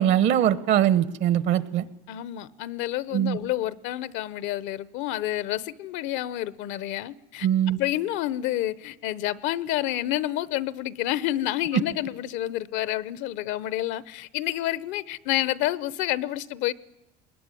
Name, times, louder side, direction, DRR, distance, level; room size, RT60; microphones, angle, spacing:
voice 1, 0.0-1.8 3.1-3.4 7.4-7.8, right 10 dB, 65° right, 1.3 m, -22 dB
voice 2, 2.1-7.5 7.7-16.7, left 14 dB, 70° left, 0.9 m, -29 dB
22.0 x 20.5 x 9.9 m
supercardioid pair, 110°, 20 cm